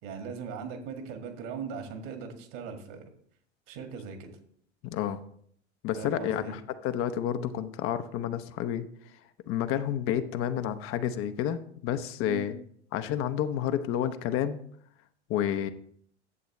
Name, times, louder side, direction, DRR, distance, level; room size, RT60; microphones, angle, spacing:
voice 1, 0.0-3.1 3.7-4.3 6.0-6.6 12.3-12.5, right 6 dB, 55° right, 5 dB, 1.9 m, -39 dB
voice 2, 4.8-5.2 5.8-8.9 9.1-9.2 9.5-12.5 12.9-14.6 15.3-15.7, left 10 dB, 40° left, 9 dB, 0.7 m, -30 dB
11.0 x 7.9 x 3.1 m, 0.62 s
figure-of-eight pair, 85°, 35 cm